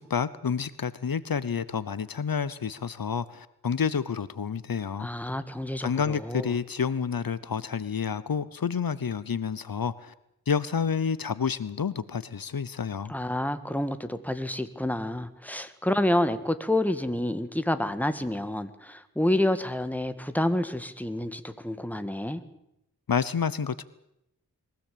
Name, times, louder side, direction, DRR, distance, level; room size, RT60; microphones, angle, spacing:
voice 1, 0.0-5.1 5.8-10.1 10.5-13.1 23.1-23.8, left 6 dB, 70° left, 17 dB, 0.9 m, -29 dB
voice 2, 5.0-6.5 13.1-22.4, left 1 dB, 5° left, 10 dB, 1.7 m, -28 dB
22.5 x 16.5 x 8.6 m, 0.81 s
wide cardioid pair, 60°, 36 cm